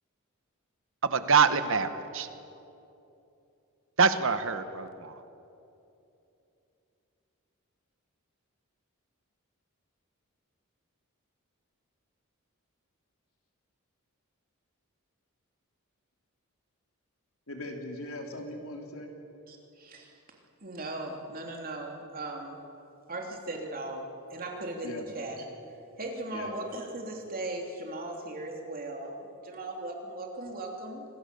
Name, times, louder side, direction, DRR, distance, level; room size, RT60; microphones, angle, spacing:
voice 1, 1.0-2.3 4.0-5.1, right 5 dB, 65° right, 11 dB, 1.2 m, -25 dB
voice 2, 17.5-19.1 24.8-25.1 26.3-26.5, left 1 dB, 80° left, 2 dB, 3.5 m, -39 dB
voice 3, 19.5-20.1 20.6-22.6 23.1-24.0 24.3-25.4 26.0-31.0, right 2 dB, 45° right, 1 dB, 3.2 m, -38 dB
26.0 x 20.0 x 7.0 m, 2.8 s
head